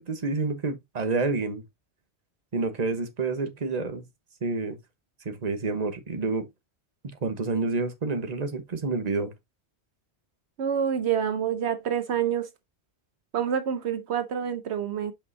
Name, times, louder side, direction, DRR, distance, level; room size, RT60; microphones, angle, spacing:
voice 1, 0.0-1.6 2.5-4.1 4.4-4.8 5.2-6.5 7.2-9.3, right 3 dB, 40° right, 1.2 m, -28 dB
voice 2, 10.6-12.5 13.3-15.1, right 8 dB, 75° right, 1.0 m, -27 dB
6.9 x 5.5 x 2.7 m
omnidirectional pair, 1.1 m